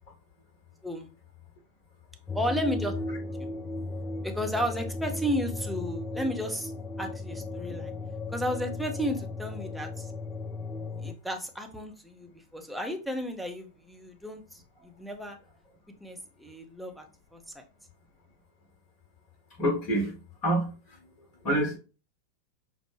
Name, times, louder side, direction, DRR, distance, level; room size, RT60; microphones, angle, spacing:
sound 1, 2.3-11.1, left 2 dB, 20° left, 0.4 m, -36 dB
voice 1, 2.3-2.9 3.4-3.5 4.2-6.7 7.0-7.9 8.3-10.1 11.0-15.4 16.0-17.1 17.3-17.4, equal, ahead, 2 dB, 0.8 m, -33 dB
voice 2, 19.6-20.1 20.4-21.0 21.4-21.8, right 1 dB, 35° left, 2 dB, 1.2 m, -27 dB
6.0 x 2.2 x 3.1 m, 0.33 s
figure-of-eight pair, 90°, 0 cm